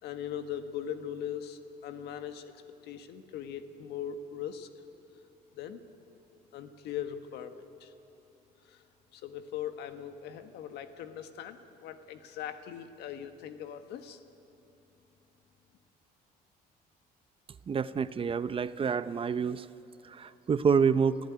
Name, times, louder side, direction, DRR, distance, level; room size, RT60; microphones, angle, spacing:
voice 1, 0.0-4.7 5.5-5.8 6.5-7.9 8.6-8.8 9.1-14.2, left 9 dB, 80° left, 8 dB, 1.6 m, -40 dB
voice 2, 17.7-19.6 20.1-21.2, right 6 dB, 30° right, 14 dB, 0.7 m, -27 dB
30.0 x 15.0 x 9.7 m, 3.0 s
cardioid pair, 110°, 17 cm